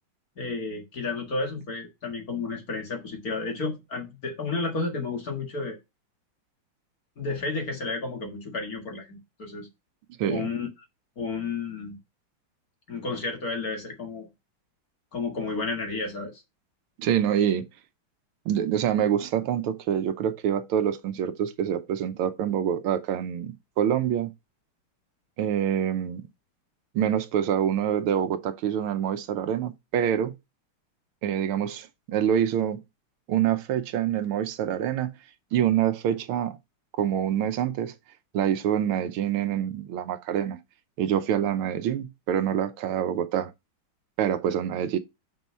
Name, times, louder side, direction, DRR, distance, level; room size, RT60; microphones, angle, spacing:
voice 1, 0.4-5.8 7.2-9.7 10.3-10.7 11.2-12.0 12.9-14.3 15.1-16.4, left 3 dB, 45° left, 2.3 m, -32 dB
voice 2, 17.0-17.7 18.4-24.3 25.4-26.2 26.9-30.4 31.2-32.8 33.3-35.1 35.5-36.6 37.0-37.9 38.3-40.6 41.0-43.5 44.2-45.0, right 9 dB, 85° right, 1.7 m, -26 dB
6.0 x 5.5 x 5.4 m
omnidirectional pair, 2.3 m